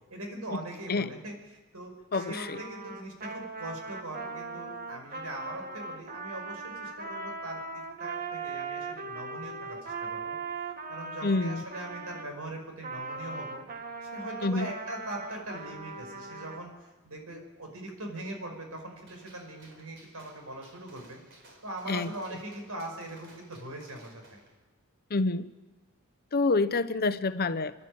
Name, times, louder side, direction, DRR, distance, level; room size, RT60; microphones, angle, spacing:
voice 1, 0.1-1.3 1.7-10.3 10.9-13.7 14.0-21.2 21.6-24.2, right 1 dB, 90° right, 3 dB, 5.3 m, -41 dB
voice 2, 2.1-2.6 11.2-11.6 14.4-14.7 21.9-22.1 25.1-25.5 26.3-27.8, left 3 dB, 45° left, 13 dB, 0.8 m, -27 dB
Trumpet, 2.1-12.3 12.8-16.6, right 4 dB, 40° right, 1.8 m, -39 dB
Gunshot gunfire, 19.1-24.5, right 2 dB, 60° right, 4.5 m, -57 dB
28.0 x 11.0 x 8.7 m, 1.2 s
head